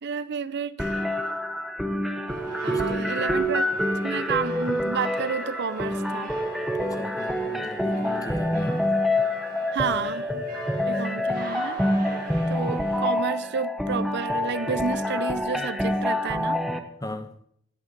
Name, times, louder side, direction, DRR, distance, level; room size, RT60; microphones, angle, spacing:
voice 1, 0.0-1.4 2.6-3.6 4.0-6.3 9.7-10.4 10.8-11.8 12.5-16.6, right 6 dB, 55° right, 0.6 m, -30 dB
sound 1, 0.8-16.8, left 1 dB, ahead, 1.0 m, -27 dB
sound 2, 2.3-13.0, right 2 dB, 40° right, 6.3 m, -43 dB
voice 2, 2.7-3.9 6.7-8.9 17.0-17.4, left 1 dB, 15° left, 1.0 m, -38 dB
19.5 x 7.1 x 5.3 m
head